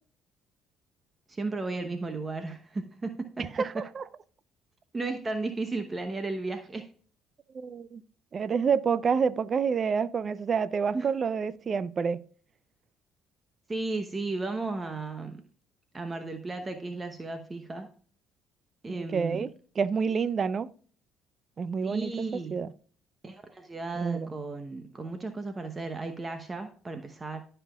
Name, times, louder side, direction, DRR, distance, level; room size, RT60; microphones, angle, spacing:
voice 1, 1.3-3.8 4.9-6.9 10.9-11.1 13.7-15.4 15.9-17.9 18.8-19.5 21.8-22.7 23.2-27.4, right 3 dB, 30° right, 1.0 m, -34 dB
voice 2, 3.4-4.0 7.5-8.0 8.3-12.2 18.9-19.5 19.8-20.7 21.6-22.1 22.5-22.7 24.0-24.3, right 6 dB, 45° right, 0.5 m, -28 dB
14.0 x 5.7 x 2.4 m
hypercardioid pair, 60°, 0 cm